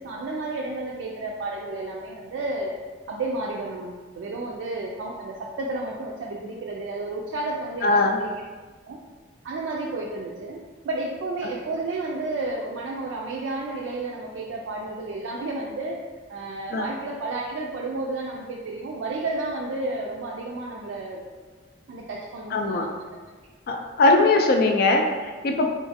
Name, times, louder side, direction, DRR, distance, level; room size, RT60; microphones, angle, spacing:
voice 1, 0.0-2.8 3.1-8.3 8.9-9.0 9.4-16.0 16.3-21.2 21.9-22.9, right 2 dB, 80° right, -3 dB, 0.3 m, -31 dB
voice 2, 7.8-8.2 16.7-16.9 22.5-22.9 23.7-25.7, left 2 dB, 50° left, 3 dB, 0.3 m, -20 dB
3.8 x 2.4 x 2.6 m, 1.4 s
head